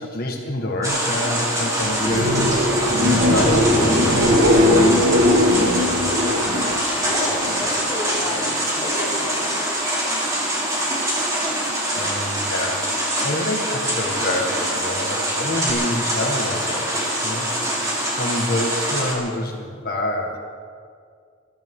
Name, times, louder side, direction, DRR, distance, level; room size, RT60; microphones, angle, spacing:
voice 1, 0.0-4.7 12.0-12.9 13.2-17.5 17.7-20.4, left 1 dB, 45° left, 0 dB, 1.8 m, -27 dB
sound 1, 0.8-19.1, right 1 dB, 15° right, 3.7 m, -24 dB
sound 2, 1.9-7.7 8.1-8.6 15.7-15.8, left 1 dB, 75° right, 2.1 m, -19 dB
voice 2, 7.0-9.6, left 1 dB, 25° left, -6 dB, 3.9 m, -31 dB
22.5 x 14.0 x 3.9 m, 2.1 s
head